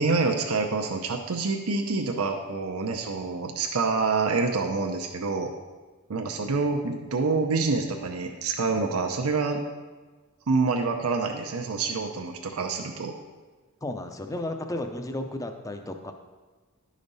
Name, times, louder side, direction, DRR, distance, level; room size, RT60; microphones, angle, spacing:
voice 1, 0.0-5.5 6.1-9.6 10.5-13.1, right 4 dB, 75° right, 3 dB, 0.6 m, -27 dB
voice 2, 13.8-16.1, left 1 dB, 15° left, 6 dB, 0.5 m, -33 dB
11.5 x 5.1 x 4.0 m, 1.3 s
head